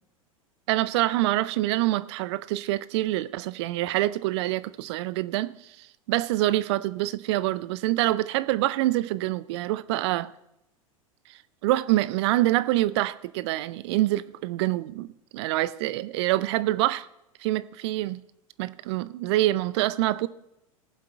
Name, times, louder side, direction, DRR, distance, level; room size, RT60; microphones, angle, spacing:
voice 1, 0.7-5.5 6.1-10.3 11.6-15.1 15.3-17.0 17.4-18.2 18.6-20.3, right 16 dB, 50° right, 0.5 m, -25 dB
18.0 x 7.5 x 4.6 m
figure-of-eight pair, 90°, 18 cm